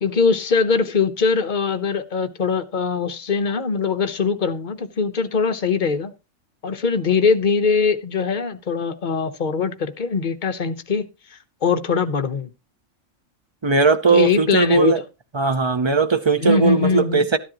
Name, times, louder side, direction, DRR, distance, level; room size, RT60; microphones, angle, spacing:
voice 1, 0.0-6.1 6.6-11.1 11.6-12.5 14.1-15.0 16.4-17.3, left 5 dB, 40° left, 0.9 m, -21 dB
voice 2, 13.6-15.0 15.3-17.4, right 4 dB, 35° right, 0.4 m, -18 dB
13.0 x 10.5 x 2.9 m
omnidirectional pair, 1.4 m